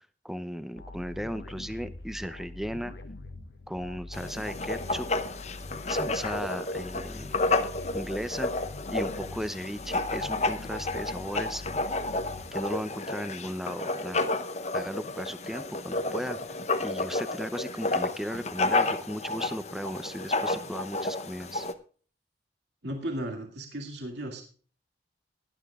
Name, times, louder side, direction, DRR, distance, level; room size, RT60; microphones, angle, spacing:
voice 1, 0.0-2.9 3.7-5.1 5.9-7.4 7.9-8.5 8.9-11.6 12.5-14.2 14.7-16.4 16.8-21.7, equal, ahead, 11 dB, 0.7 m, -36 dB
sound 1, 0.8-13.0, left 2 dB, 80° left, 1.1 m, -44 dB
Writing, 4.1-21.7, left 2 dB, 40° left, 0.8 m, -31 dB
voice 2, 22.8-24.4, right 1 dB, 80° right, 2 dB, 2.3 m, -35 dB
18.5 x 11.5 x 2.4 m, 0.42 s
head